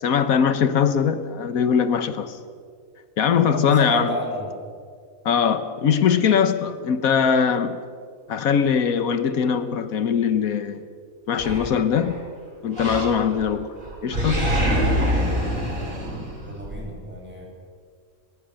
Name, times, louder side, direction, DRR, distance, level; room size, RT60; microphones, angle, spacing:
voice 1, 0.0-2.4 3.2-4.1 5.2-7.8 8.3-10.8 11.3-12.2 12.6-13.7 14.0-14.5, left 7 dB, 85° left, 11 dB, 1.5 m, -21 dB
voice 2, 3.5-4.5 15.9-16.1 16.4-17.5, equal, 5° right, -2 dB, 6.6 m, -31 dB
Animal, 11.4-12.2 12.7-13.5 13.8-16.7, equal, 65° right, 8.1 m, -24 dB
22.0 x 20.5 x 6.5 m, 2.1 s
omnidirectional pair, 1.5 m